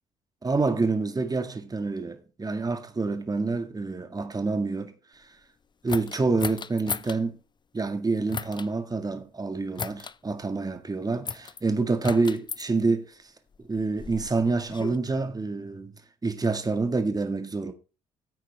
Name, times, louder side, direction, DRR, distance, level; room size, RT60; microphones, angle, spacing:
voice 1, 0.4-5.3 5.8-7.4 7.7-13.2 13.6-15.9 16.2-17.7, right 3 dB, 25° right, 1.9 m, -27 dB
sound 1, 5.9-7.2 8.3-8.7 9.8-10.2 11.3-11.6 12.0-12.6 13.5-15.0, left 6 dB, 30° left, 0.6 m, -35 dB
15.0 x 8.6 x 3.4 m
hypercardioid pair, 55°, 16 cm